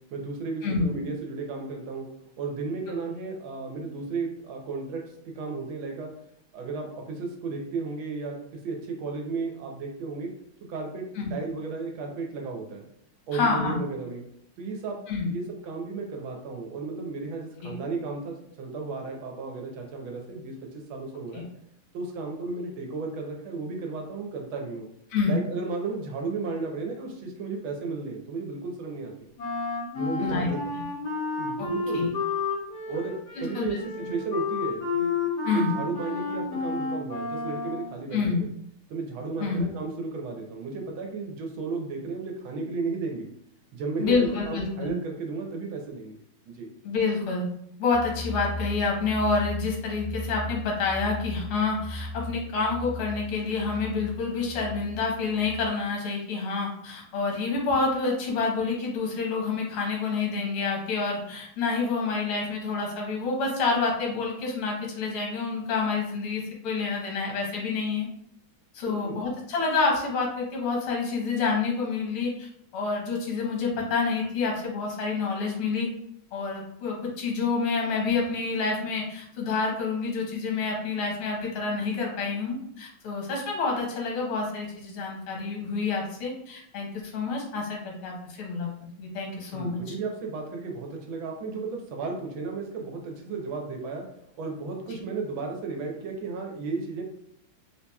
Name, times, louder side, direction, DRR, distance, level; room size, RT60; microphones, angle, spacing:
voice 1, 0.1-2.1 2.4-5.0 5.3-6.1 6.5-10.3 10.7-11.0 11.3-12.9 13.3-14.2 14.6-21.5 21.9-24.9 25.2-29.3 29.9-30.6 31.4-32.2 32.9-33.8 34.1-35.1 35.5-38.5 38.9-43.3 43.7-46.2 46.5-46.7 68.9-69.2 89.5-94.1 94.4-97.0, right 4 dB, 75° right, 1 dB, 1.5 m, -34 dB
voice 2, 13.3-13.8 15.1-15.3 17.6-17.7 21.3-21.4 25.1-25.4 30.2-30.5 31.6-31.7 31.9-32.1 33.4-33.8 34.0-34.1 35.4-35.7 38.1-38.4 39.4-39.7 44.0-44.9 46.8-47.5 47.8-68.1 68.7-72.5 72.7-75.9 76.3-88.7 89.0-89.8, left 4 dB, 90° left, -1 dB, 1.8 m, -28 dB
Wind instrument woodwind instrument, 29.4-38.0, left 4 dB, 50° left, 1.8 m, -31 dB
sound 1, 47.9-55.7, left 1 dB, 55° right, 1.7 m, -37 dB
4.5 x 2.8 x 2.2 m, 0.72 s
omnidirectional pair, 2.3 m